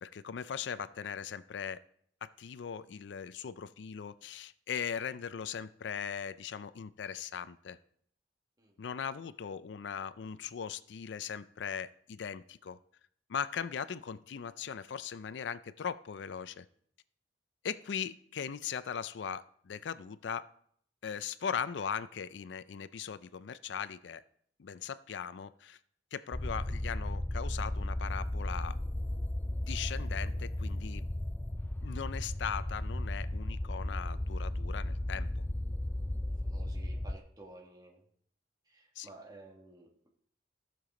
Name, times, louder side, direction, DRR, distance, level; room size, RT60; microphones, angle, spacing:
voice 1, 0.0-1.8 2.2-7.8 8.8-12.8 13.3-16.6 17.6-20.5 21.0-24.2 24.6-25.8 26.1-28.7 29.6-31.0 31.8-35.3 39.0-39.1, left 7 dB, 70° left, 15 dB, 0.4 m, -39 dB
sound 1, 26.3-37.2, left 1 dB, 10° left, 0.4 m, -35 dB
voice 2, 36.4-38.0 38.7-40.1, right 2 dB, 20° right, 0 dB, 1.9 m, -53 dB
14.5 x 6.9 x 3.8 m, 0.65 s
head